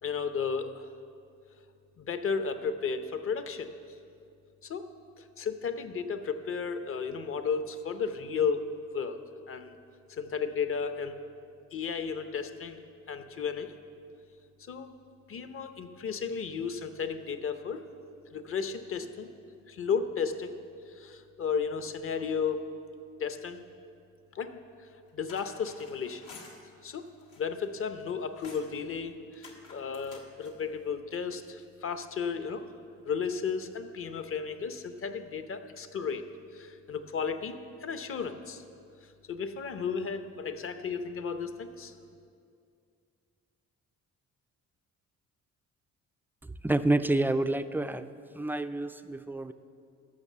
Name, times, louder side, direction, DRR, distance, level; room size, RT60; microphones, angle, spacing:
voice 1, 0.0-0.8 2.0-3.7 4.6-4.8 5.2-8.7 8.9-9.2 9.5-9.8 10.1-11.1 11.7-12.8 13.1-13.7 14.7-14.9 15.3-17.8 18.3-19.3 19.7-20.6 20.9-22.7 23.2-23.7 24.3-24.6 25.1-26.3 26.8-27.0 27.4-32.6 33.0-36.2 36.5-37.6 37.8-38.6 39.3-41.9, left 6 dB, 45° left, 9 dB, 0.8 m, -33 dB
sound 1, 25.1-26.6 27.1-27.7 28.0-28.7 29.3-30.6, left 4 dB, 80° left, 1.7 m, -51 dB
voice 2, 46.6-49.5, right 2 dB, 5° right, 10 dB, 0.3 m, -28 dB
12.5 x 6.0 x 7.3 m, 2.4 s
cardioid pair, 90°, 30 cm